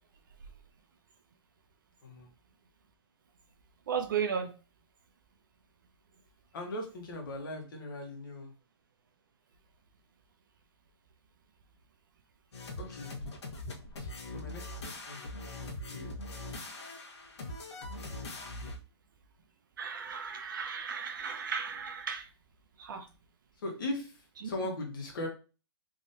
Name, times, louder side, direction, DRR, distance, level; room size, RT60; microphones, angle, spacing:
voice 1, 3.9-4.5 19.8-22.3 22.8-23.1 24.4-24.5, right 6 dB, 45° right, 7 dB, 0.5 m, -35 dB
voice 2, 6.5-8.5 12.8-13.2 14.0-16.1 23.6-25.3, left 1 dB, 50° left, 1 dB, 1.4 m, -40 dB
sound 1, 12.5-18.8, left 2 dB, 75° left, 1.3 m, -42 dB
3.7 x 3.0 x 2.7 m, 0.32 s
hypercardioid pair, 170°, 15 cm